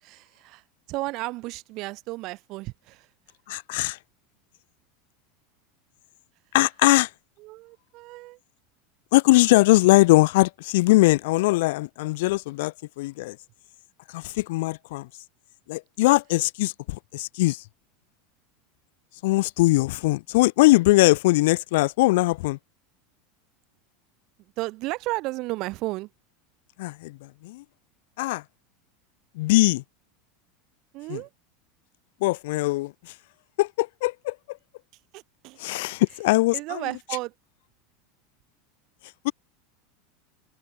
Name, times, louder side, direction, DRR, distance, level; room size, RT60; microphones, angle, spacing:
voice 1, 0.0-3.1 7.4-8.4 24.6-26.1 30.9-31.3 35.1-35.6 36.5-37.3, right 21 dB, 55° right, 0.9 m, -33 dB
voice 2, 3.5-4.0 6.5-7.1 9.1-13.4 14.1-15.1 15.7-17.6 19.2-22.6 26.8-27.6 28.2-28.4 29.4-29.8 31.1-31.2 32.2-33.1 33.6-34.6 35.6-36.8 39.2-39.3, left 20 dB, 70° left, 0.3 m, -21 dB
supercardioid pair, 110°, 0 cm